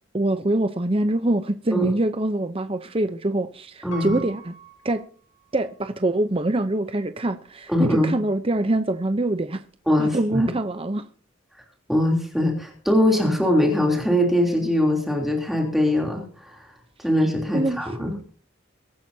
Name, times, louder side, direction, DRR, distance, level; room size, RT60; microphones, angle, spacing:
voice 1, 0.1-4.6 4.8-5.0 5.5-9.6 10.0-11.1 17.5-18.1, right 1 dB, 30° right, 0.8 m, -24 dB
voice 2, 3.8-4.2 7.7-8.1 9.9-10.5 11.9-16.7 17.0-18.2, left 1 dB, ahead, 3.2 m, -22 dB
Piano, 3.9-5.9 6.5-6.6, right 3 dB, 85° left, 4.6 m, -42 dB
23.0 x 13.0 x 2.8 m
head